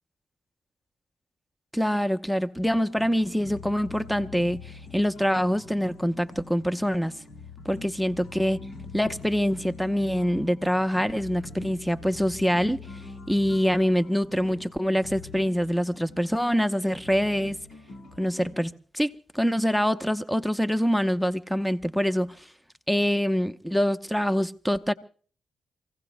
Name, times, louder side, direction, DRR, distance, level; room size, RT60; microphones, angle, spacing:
voice 1, 1.7-7.1 7.6-8.6 8.9-12.9 13.3-17.6 18.2-22.5 22.9-24.9, equal, ahead, 0.9 m, -25 dB
sound 1, 2.6-18.6, left 4 dB, 65° left, 3.9 m, -44 dB
27.5 x 16.5 x 2.2 m
supercardioid pair, 55°, 0 cm